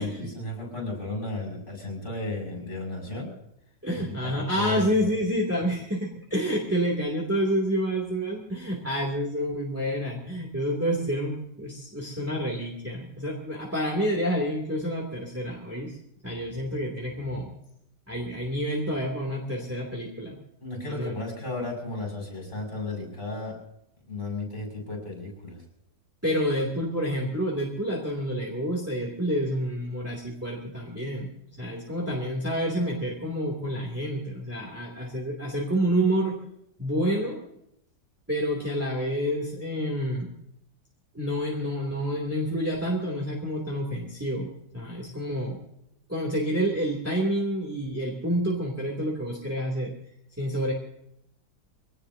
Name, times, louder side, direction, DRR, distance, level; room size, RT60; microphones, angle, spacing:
voice 1, 0.0-3.3 3.9-4.8 20.6-23.6 24.1-25.6, left 2 dB, 30° left, 3 dB, 7.0 m, -34 dB
voice 2, 3.8-16.0 16.2-17.5 18.1-20.4 20.8-21.2 26.2-31.3 31.6-36.4 36.8-37.4 38.3-40.3 41.1-45.6 46.1-49.9 50.4-50.7, equal, 10° right, -2 dB, 2.7 m, -28 dB
24.0 x 18.5 x 2.8 m, 0.76 s
omnidirectional pair, 1.9 m